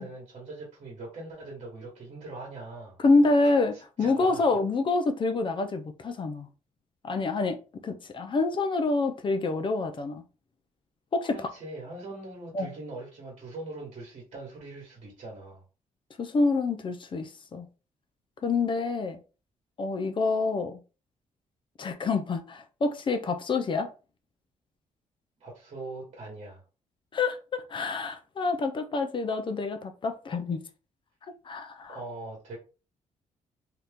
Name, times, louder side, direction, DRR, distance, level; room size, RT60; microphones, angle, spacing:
voice 1, 0.0-3.0 3.4-3.6 4.0-4.4 11.2-15.6 25.4-26.6 31.9-32.6, right 2 dB, 50° right, 1.3 m, -41 dB
voice 2, 3.0-6.5 7.0-7.6 7.8-10.2 11.1-11.5 12.5-12.7 16.2-17.7 18.4-19.2 19.8-20.8 21.8-23.9 27.1-30.6 31.4-32.0, left 3 dB, 40° left, 0.5 m, -27 dB
2.8 x 2.4 x 3.5 m
cardioid pair, 100°, 13 cm